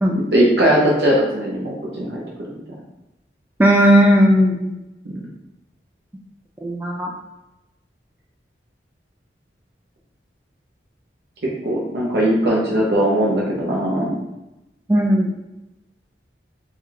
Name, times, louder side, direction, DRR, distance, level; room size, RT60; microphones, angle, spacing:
voice 1, 0.1-2.2 5.0-5.2 11.6-14.2, equal, 65° right, -3 dB, 0.7 m, -19 dB
voice 2, 3.6-4.7 6.6-7.1 14.9-15.3, equal, 10° right, 0 dB, 0.3 m, -15 dB
3.5 x 2.3 x 4.4 m, 0.94 s
head